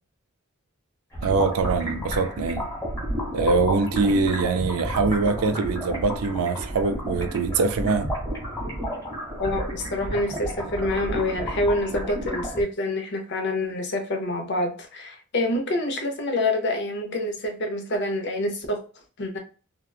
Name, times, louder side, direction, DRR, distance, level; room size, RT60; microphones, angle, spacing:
sound 1, 1.1-12.6, equal, 15° left, 1.1 m, -31 dB
voice 1, 1.2-2.7 3.3-8.1, right 4 dB, 85° right, 0.4 m, -23 dB
voice 2, 9.4-18.8 19.2-19.4, left 1 dB, 55° left, 0.6 m, -27 dB
2.8 x 2.3 x 2.3 m
head